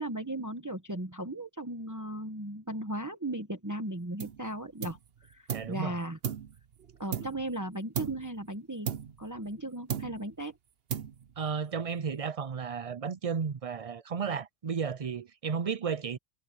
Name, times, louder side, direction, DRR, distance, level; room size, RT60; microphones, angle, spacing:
voice 1, 0.0-5.0 5.3-6.2 7.0-8.9 9.2-10.6, right 1 dB, 20° right, 1.2 m, -36 dB
sound 1, 4.2-4.5 4.8-5.8 6.2-7.6 7.9-8.4 8.9-9.6 9.9-10.4 10.9-11.5, right 8 dB, 70° right, 1.2 m, -37 dB
voice 2, 5.5-6.0 11.4-16.2, right 6 dB, 40° right, 0.6 m, -33 dB
omnidirectional pair, 1.0 m